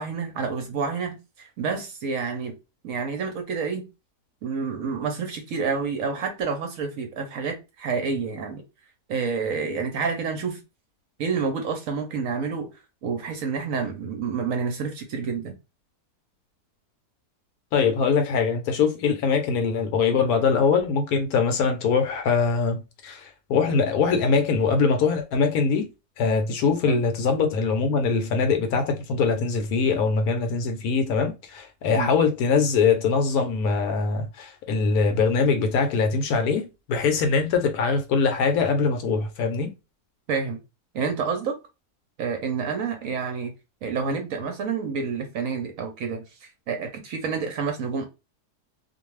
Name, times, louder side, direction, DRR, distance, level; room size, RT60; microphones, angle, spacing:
voice 1, 0.0-2.5 2.8-3.9 4.4-8.6 9.1-10.6 11.2-12.7 13.0-15.5 26.9-27.0 31.9-32.1 40.3-40.6 40.9-41.6 42.2-43.5 43.8-48.0, right 5 dB, 65° right, 0.9 m, -28 dB
voice 2, 17.7-25.9 26.2-39.7, left 5 dB, 70° left, 1.0 m, -22 dB
2.5 x 2.3 x 3.0 m
omnidirectional pair, 1.7 m